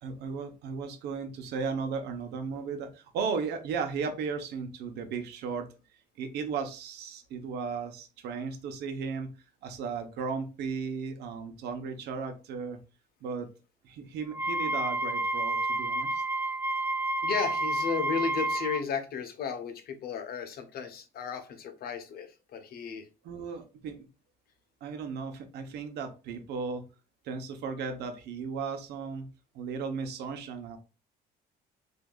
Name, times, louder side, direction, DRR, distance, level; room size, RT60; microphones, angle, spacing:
voice 1, 0.0-5.7 6.2-9.3 9.6-12.8 13.2-13.5 13.8-16.2 23.2-24.1 24.8-26.8 27.2-30.8, right 5 dB, 75° right, 7 dB, 0.9 m, -35 dB
Wind instrument woodwind instrument, 14.3-18.8, right 2 dB, 15° right, 0.3 m, -30 dB
voice 2, 17.2-23.1, left 6 dB, 65° left, 7 dB, 1.0 m, -34 dB
6.3 x 2.7 x 2.4 m, 0.32 s
cardioid pair, 110°, 17 cm